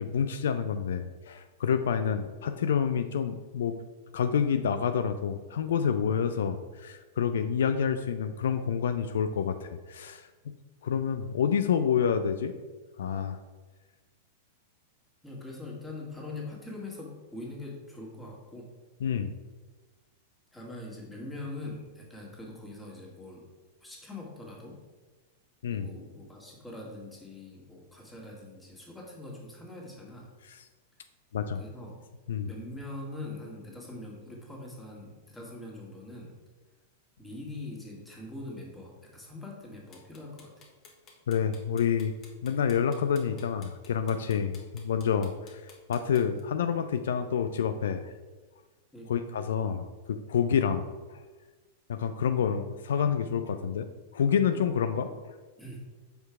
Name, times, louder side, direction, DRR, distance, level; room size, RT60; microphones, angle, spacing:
voice 1, 0.0-3.8 4.1-10.5 10.8-12.5 13.0-13.4 19.0-19.3 25.6-25.9 30.4-30.6 31.3-31.6 32.3-32.5 41.3-42.1 42.4-48.1 49.1-51.2 51.9-53.9 54.1-55.1, left 7 dB, 70° left, 9 dB, 0.4 m, -28 dB
voice 2, 15.2-18.7 20.5-23.5 23.8-24.8 25.7-30.3 31.6-32.0 32.5-36.3 37.2-40.5 48.9-49.1 54.5-54.7 55.0-55.1 55.6-55.8, left 2 dB, 5° left, -3 dB, 1.9 m, -43 dB
sound 1, 39.9-46.4, left 4 dB, 35° left, 1.4 m, -54 dB
5.5 x 4.5 x 4.7 m, 1.3 s
hypercardioid pair, 100°, 0 cm